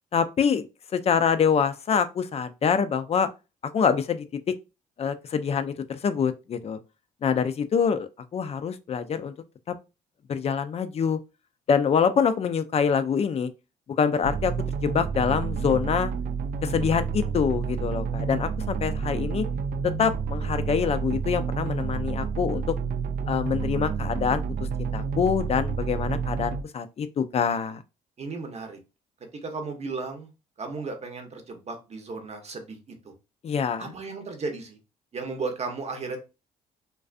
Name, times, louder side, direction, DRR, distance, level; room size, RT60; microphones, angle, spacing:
voice 1, 0.1-0.7 0.9-3.3 3.7-4.2 5.0-6.8 7.2-9.3 9.7-9.8 10.3-11.2 11.7-13.5 14.0-14.5 14.8-16.1 16.6-19.5 20.0-22.8 23.3-24.4 24.8-27.8 33.4-33.9, left 6 dB, 40° left, 0.4 m, -25 dB
sound 1, 14.2-26.6, right 6 dB, 65° right, 0.4 m, -29 dB
voice 2, 28.2-28.8 29.3-30.3 30.6-33.1 33.8-34.8 35.1-36.2, right 4 dB, 40° right, 0.8 m, -35 dB
2.4 x 2.3 x 2.4 m
supercardioid pair, 65°, 17 cm